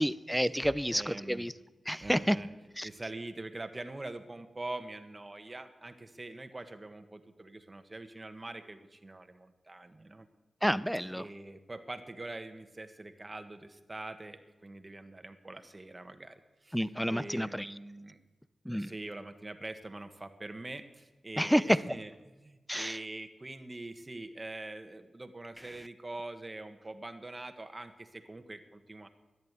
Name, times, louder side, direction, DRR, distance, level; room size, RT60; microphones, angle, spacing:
voice 1, 0.0-1.5 1.9-2.4 2.8-2.9 10.6-11.3 16.7-17.7 18.7-18.9 21.4-21.8 22.7-23.0, equal, ahead, 17 dB, 0.5 m, -29 dB
voice 2, 0.9-1.5 2.0-2.5 2.8-10.3 11.1-18.2 18.7-29.1, right 2 dB, 25° right, 8 dB, 1.3 m, -44 dB
14.0 x 11.0 x 8.2 m, 1.2 s
cardioid pair, 75°, 0 cm